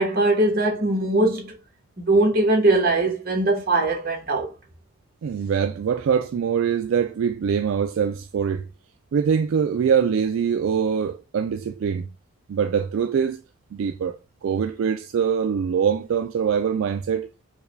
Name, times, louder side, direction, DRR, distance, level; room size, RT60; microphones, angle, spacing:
voice 1, 0.0-1.5 2.0-4.5, right 2 dB, 45° right, 1.2 m, -21 dB
voice 2, 5.2-8.7 9.1-12.0 12.5-13.4 13.7-17.3, right 7 dB, 75° right, 0.3 m, -23 dB
4.7 x 2.2 x 3.3 m
head